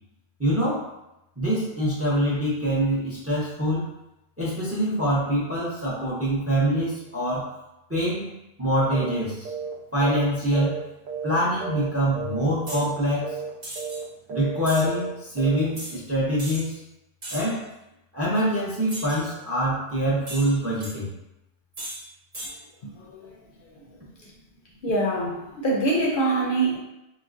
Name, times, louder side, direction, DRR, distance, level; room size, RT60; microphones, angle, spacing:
voice 1, 0.4-0.9 1.4-3.9 4.4-7.6 7.9-9.5 9.9-10.8 11.2-13.4 14.3-16.8 17.3-17.7 18.1-21.1, equal, 15° right, -6 dB, 0.5 m, -25 dB
sound 1, 8.9-9.2 9.4-9.7 10.0-11.4 11.6-11.9 12.1-12.4 12.7-13.0 13.2-13.5 13.8-14.0 14.3-14.6 14.8-15.1 15.4-15.6, right 6 dB, 80° right, 0.8 m, -33 dB
sound 2, 12.7-12.9 13.6-14.0 14.6-14.9 15.8-16.0 16.4-16.6 17.2-17.6 18.9-19.3 20.3-20.9 21.7-22.0 22.3-22.5, right 1 dB, 45° right, 0.9 m, -36 dB
voice 2, 22.8-23.3 23.8-23.9 24.2-24.3 24.8-26.8, right 2 dB, 60° left, -3 dB, 0.7 m, -25 dB
3.8 x 2.1 x 2.5 m, 0.89 s
omnidirectional pair, 1.1 m